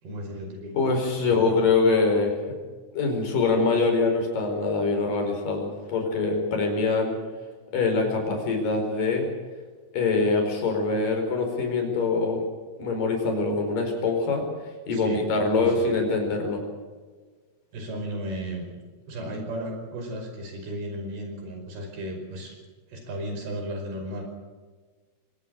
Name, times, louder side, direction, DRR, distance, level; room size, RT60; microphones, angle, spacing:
voice 1, 0.0-1.7 14.9-15.3 15.6-15.9 17.7-18.8 19.1-22.6 22.9-24.2, equal, 65° right, 4 dB, 7.0 m, -35 dB
voice 2, 0.7-2.4 2.9-7.2 7.7-9.3 9.9-12.4 12.8-14.5 14.9-16.6, left 3 dB, 55° left, 3 dB, 6.2 m, -24 dB
23.5 x 18.5 x 6.6 m, 1.4 s
omnidirectional pair, 4.9 m